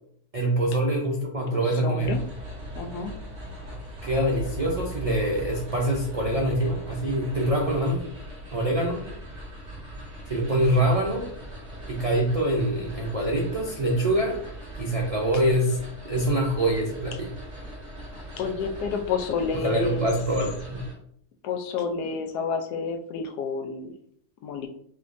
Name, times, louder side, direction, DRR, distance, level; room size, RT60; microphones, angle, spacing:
voice 1, 0.3-2.2 4.0-8.0 8.5-9.1 10.3-11.3 11.9-14.4 14.8-15.8 16.0-17.3 19.6-20.8, right 1 dB, 70° right, -1 dB, 0.3 m, -25 dB
voice 2, 1.5-2.2 2.7-3.1 18.1-20.1 21.4-23.9 24.4-24.7, left 5 dB, 85° left, 5 dB, 1.2 m, -30 dB
sound 1, 2.0-20.9, right 1 dB, 30° right, 1.7 m, -40 dB
5.1 x 3.3 x 2.5 m, 0.66 s
omnidirectional pair, 1.7 m